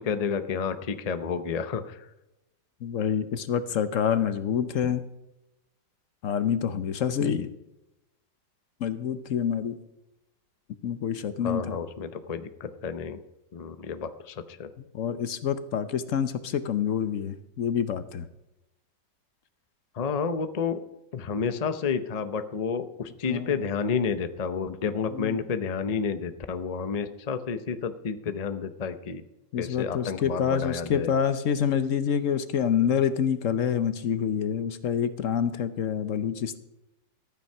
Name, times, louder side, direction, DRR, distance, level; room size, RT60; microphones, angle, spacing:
voice 1, 0.0-2.1 11.4-13.2 13.5-14.7 19.9-20.8 21.1-29.2 29.6-31.1, left 6 dB, 80° left, 11 dB, 0.3 m, -30 dB
voice 2, 2.8-5.0 6.2-7.5 8.8-9.8 10.8-11.8 14.9-18.2 23.3-23.5 25.1-25.4 29.5-36.6, left 8 dB, 60° left, 12 dB, 0.9 m, -27 dB
14.0 x 9.4 x 5.6 m, 0.92 s
omnidirectional pair, 2.0 m